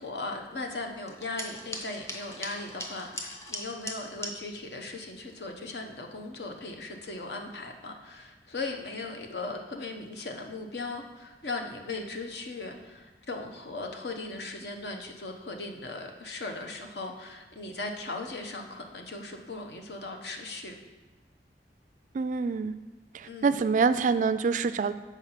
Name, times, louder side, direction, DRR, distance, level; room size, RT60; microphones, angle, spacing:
voice 1, 0.0-20.7 23.2-23.6, left 2 dB, 70° left, 3 dB, 1.0 m, -38 dB
sound 1, 1.1-4.3, left 1 dB, 15° left, 0.9 m, -39 dB
voice 2, 22.1-22.7 23.1-24.9, right 5 dB, 45° right, 13 dB, 0.3 m, -26 dB
7.3 x 4.9 x 5.7 m, 1.2 s
head